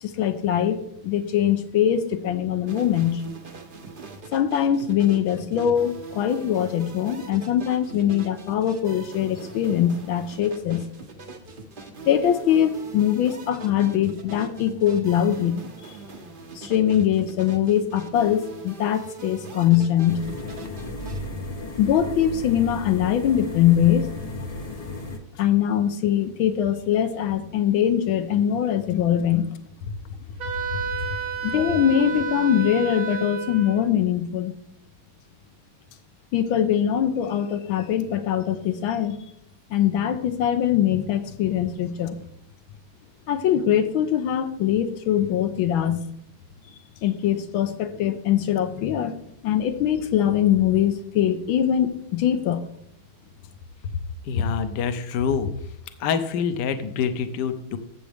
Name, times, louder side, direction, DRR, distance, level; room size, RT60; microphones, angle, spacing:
voice 1, 0.0-0.8 1.0-3.2 4.3-10.8 12.0-16.0 16.5-20.2 21.8-24.1 25.4-29.5 31.4-34.5 36.3-39.2 39.7-42.2 43.3-46.0 47.0-49.2 49.4-52.6, left 10 dB, 80° left, 8 dB, 1.5 m, -22 dB
sound 1, 2.7-21.2, right 4 dB, 40° right, 0.7 m, -42 dB
sound 2, 20.1-25.2, left 2 dB, 45° left, 0.4 m, -34 dB
Wind instrument woodwind instrument, 30.4-33.9, right 6 dB, 75° right, 2.0 m, -31 dB
voice 2, 54.2-55.5 56.0-57.8, left 6 dB, 65° left, 10 dB, 1.3 m, -25 dB
13.0 x 7.6 x 3.5 m, 0.75 s
omnidirectional pair, 2.2 m